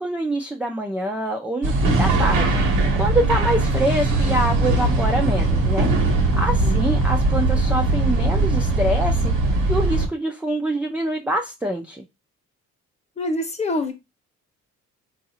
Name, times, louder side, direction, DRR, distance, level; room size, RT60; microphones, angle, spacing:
voice 1, 0.0-2.6 3.0-9.3 9.7-12.0, right 1 dB, 5° right, 0.4 m, -25 dB
sound 1, 1.6-10.1, right 2 dB, 85° right, 1.0 m, -20 dB
voice 2, 6.3-7.0 13.2-13.9, left 2 dB, 20° left, 0.9 m, -27 dB
3.9 x 2.4 x 2.8 m
cardioid pair, 90°, 30 cm